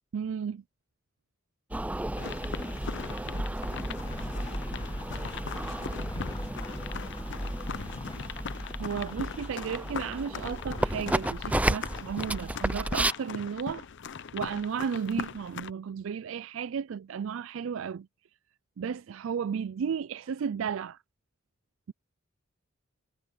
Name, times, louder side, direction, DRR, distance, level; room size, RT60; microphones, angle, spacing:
voice 1, 0.1-0.6 8.8-13.9 14.3-18.1 18.8-21.0, right 7 dB, 70° right, 0.4 m, -33 dB
sound 1, 1.7-13.1, right 1 dB, 5° right, 0.5 m, -33 dB
sound 2, 2.1-15.7, left 6 dB, 60° left, 0.6 m, -40 dB
sound 3, 3.6-13.9, left 4 dB, 25° left, 0.9 m, -51 dB
voice 2, 17.2-17.7 20.1-20.5, right 3 dB, 25° right, 7.2 m, -66 dB
head